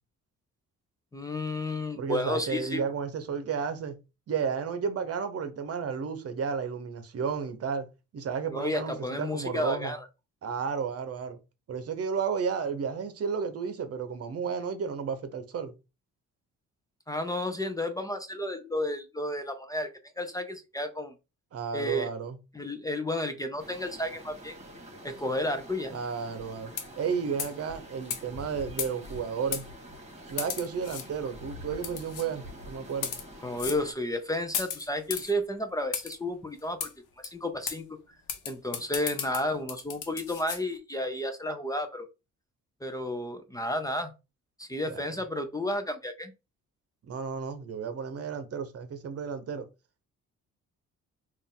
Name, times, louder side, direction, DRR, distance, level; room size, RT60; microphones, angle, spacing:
voice 1, 1.1-2.8 8.5-10.0 17.1-19.9 20.2-21.1 21.7-22.1 22.5-24.5 25.0-26.0 33.4-36.9 37.2-37.9 38.5-42.1 42.8-44.1 44.6-46.3, left 1 dB, 10° left, 0.6 m, -32 dB
voice 2, 2.0-4.0 4.3-7.9 8.1-9.9 10.4-11.4 11.7-15.7 21.5-22.4 25.9-29.6 30.3-33.2 44.9-45.1 47.1-49.7, right 6 dB, 50° right, 0.9 m, -32 dB
sound 1, 23.6-33.9, equal, 20° right, 1.7 m, -46 dB
sound 2, 26.7-27.1 27.4-27.6 28.1-28.2 28.8-29.1 29.5-29.6 30.4-31.1 31.8-32.3 32.9-33.2 33.6-33.8 34.5-35.3 35.9-36.2 36.8-36.9 37.2-37.3 37.7-37.8 38.3-40.6, left 8 dB, 80° left, 0.9 m, -35 dB
4.2 x 2.6 x 3.6 m
cardioid pair, 90°, 30 cm